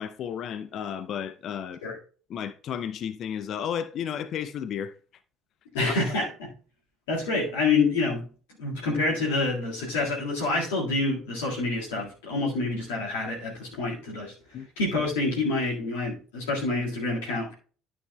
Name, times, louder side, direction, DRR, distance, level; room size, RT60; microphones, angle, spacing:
voice 1, 0.0-1.8 2.3-4.9 5.8-6.0 14.5-14.7, left 8 dB, 50° left, 0.5 m, -33 dB
voice 2, 5.7-6.5 7.1-8.3 8.6-17.5, left 3 dB, 70° left, 1.8 m, -27 dB
11.5 x 6.2 x 2.2 m
figure-of-eight pair, 55°, 0 cm